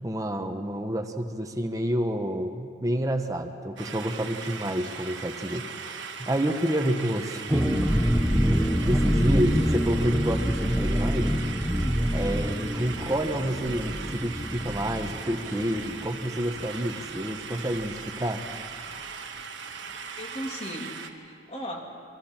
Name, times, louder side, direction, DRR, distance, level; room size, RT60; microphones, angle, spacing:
voice 1, 0.0-7.8 8.5-11.5 12.1-18.4, right 1 dB, 15° right, 5 dB, 1.1 m, -29 dB
sound 1, 3.8-21.1, right 6 dB, 65° right, 1.3 m, -39 dB
sound 2, 7.5-16.9 17.2-17.3 17.6-17.9, equal, ahead, 0.7 m, -26 dB
voice 2, 20.2-21.8, equal, 30° left, 1 dB, 2.4 m, -37 dB
28.0 x 24.5 x 4.5 m, 2.3 s
head